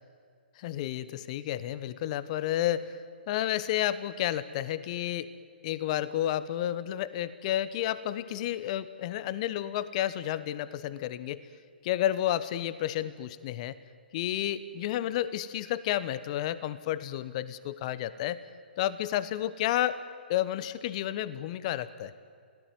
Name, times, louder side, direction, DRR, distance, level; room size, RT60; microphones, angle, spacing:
voice 1, 0.6-3.0 3.3-5.3 5.6-11.4 11.8-13.7 14.1-18.4 18.8-20.0 20.3-22.1, left 12 dB, 40° left, 16 dB, 1.2 m, -31 dB
27.5 x 18.0 x 9.5 m, 2.1 s
figure-of-eight pair, 130°, 6 cm